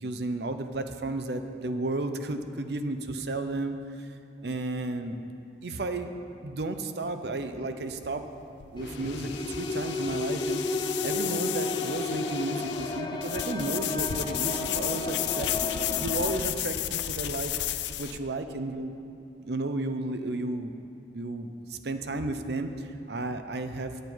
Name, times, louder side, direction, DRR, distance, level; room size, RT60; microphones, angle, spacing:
voice 1, 0.0-4.1 4.4-5.2 5.6-6.1 6.4-8.2 8.7-10.6 11.0-15.5 15.8-18.9 19.4-20.7 21.1-24.0, right 2 dB, 65° right, 8 dB, 0.6 m, -33 dB
sound 1, 7.8-18.2, left 12 dB, 75° left, 0.4 m, -33 dB
sound 2, 8.8-16.4, left 2 dB, 25° left, 0.5 m, -33 dB
9.6 x 9.1 x 4.5 m, 2.8 s
head